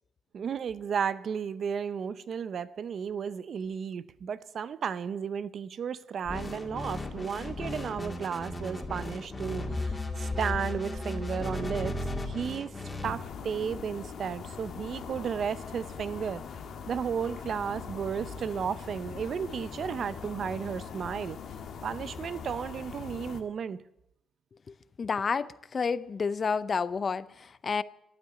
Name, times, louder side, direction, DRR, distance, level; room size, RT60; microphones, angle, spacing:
voice 1, 0.3-12.0 12.2-16.4 16.9-21.4 21.8-23.8, right 7 dB, 55° right, 0.7 m, -34 dB
sound 1, 6.3-13.1, left 2 dB, 25° left, 2.4 m, -35 dB
sound 2, 13.0-23.4, left 6 dB, 65° left, 1.5 m, -42 dB
voice 2, 24.7-27.8, left 5 dB, 40° left, 0.6 m, -30 dB
13.5 x 9.3 x 9.0 m
cardioid pair, 90°, 0 cm